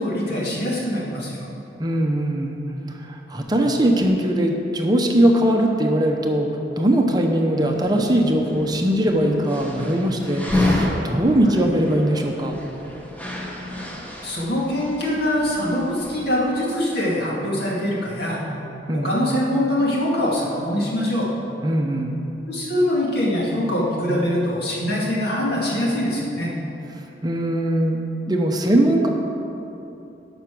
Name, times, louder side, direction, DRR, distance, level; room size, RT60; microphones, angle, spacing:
voice 1, 0.0-1.4 11.4-11.6 14.2-18.4 18.9-21.3 22.5-26.5, left 1 dB, 60° left, -4 dB, 2.2 m, -23 dB
voice 2, 1.8-2.6 3.1-6.5 6.8-12.6 18.9-19.1 21.6-22.1 27.2-28.0 28.3-29.1, right 1 dB, 20° right, 2 dB, 0.7 m, -20 dB
sound 1, 7.6-16.5, left 1 dB, 10° left, 1.1 m, -30 dB
11.5 x 6.1 x 6.0 m, 2.9 s
head